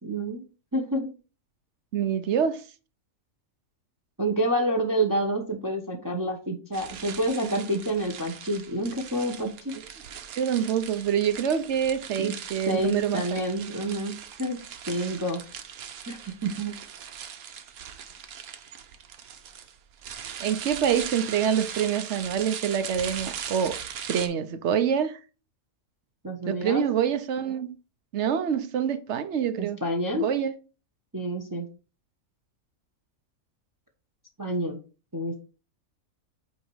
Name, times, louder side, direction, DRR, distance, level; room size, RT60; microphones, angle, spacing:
voice 1, 0.0-0.4 0.7-1.1 4.2-9.7 12.2-12.3 12.7-14.6 14.9-15.4 16.1-16.7 26.2-26.8 29.6-30.2 31.1-31.7 34.4-34.8 35.1-35.4, right 1 dB, 15° right, 0.8 m, -28 dB
voice 2, 1.9-2.6 10.4-13.4 20.4-23.8 24.1-25.2 26.4-27.7 28.1-29.8 30.1-30.5, right 8 dB, 60° right, 0.9 m, -26 dB
sound 1, 6.7-24.3, right 8 dB, 80° right, 1.2 m, -40 dB
8.3 x 2.9 x 4.7 m
omnidirectional pair, 1.5 m